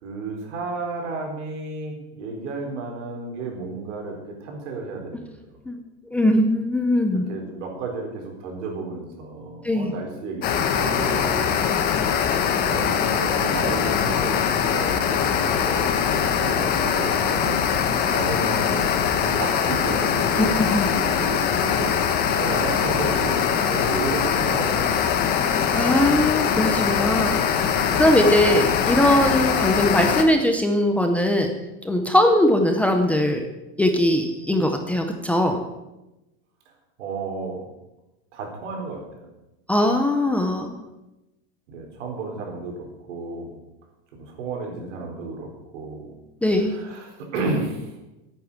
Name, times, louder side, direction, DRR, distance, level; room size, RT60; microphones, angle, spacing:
voice 1, 0.0-5.6 7.1-11.7 12.5-17.6 18.1-20.6 21.0-23.4 23.7-25.1 37.0-37.7 38.3-39.3 41.7-43.6 44.1-46.2 46.6-48.0, right 3 dB, 90° right, 1 dB, 4.2 m, -33 dB
voice 2, 6.1-7.2 9.6-9.9 20.4-20.9 25.7-27.4 28.0-31.5 31.8-33.4 33.8-35.6 39.7-40.7 46.4-46.7, left 1 dB, 5° left, 4 dB, 0.5 m, -20 dB
sound 1, 10.4-30.2, left 7 dB, 25° left, 1.0 m, -22 dB
10.5 x 8.9 x 7.1 m, 0.98 s
supercardioid pair, 170°, 35 cm